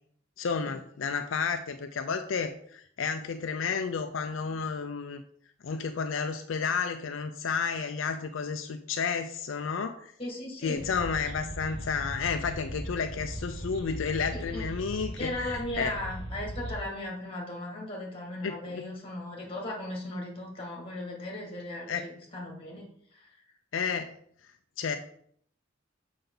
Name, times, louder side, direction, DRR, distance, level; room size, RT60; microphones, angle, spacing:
voice 1, 0.4-5.2 5.6-10.1 10.6-15.9 18.4-18.8 21.9-22.0 23.7-24.1 24.8-25.0, left 5 dB, 80° left, 7 dB, 0.5 m, -31 dB
voice 2, 10.2-10.8 14.3-14.7 15.2-23.3, left 1 dB, 30° left, -1 dB, 2.0 m, -37 dB
sound 1, 10.7-16.7, equal, 25° right, 2.7 m, -39 dB
6.9 x 5.5 x 3.9 m, 0.64 s
head